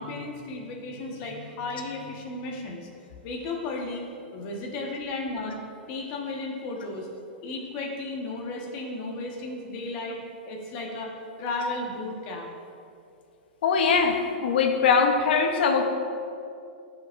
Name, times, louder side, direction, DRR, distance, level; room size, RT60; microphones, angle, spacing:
voice 1, 0.0-2.9 3.2-4.1 4.3-5.6 5.9-7.1 7.4-12.5, left 2 dB, 40° left, 0 dB, 1.4 m, -34 dB
voice 2, 13.6-15.9, left 5 dB, 70° left, 4 dB, 1.0 m, -22 dB
13.5 x 5.7 x 2.6 m, 2.5 s
supercardioid pair, 155°, 6 cm